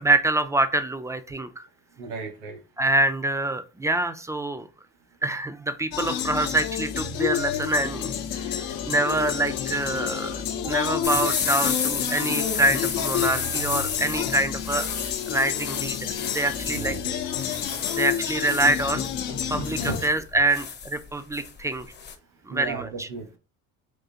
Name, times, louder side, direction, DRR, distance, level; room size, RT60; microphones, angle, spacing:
voice 1, 0.0-1.7 2.8-4.7 5.2-8.1 8.5-17.0 17.4-17.5 17.9-19.1 19.5-21.9 22.5-23.1, right 2 dB, 10° right, 10 dB, 0.3 m, -26 dB
voice 2, 2.0-2.6 16.7-17.0 19.9-20.0 22.5-23.4, right 4 dB, 75° right, 4 dB, 1.1 m, -34 dB
sound 1, 5.9-20.1, left 9 dB, 75° left, 0.7 m, -30 dB
sound 2, 11.0-22.1, left 6 dB, 30° left, 0.7 m, -31 dB
3.7 x 3.1 x 2.8 m, 0.32 s
supercardioid pair, 85°, 37 cm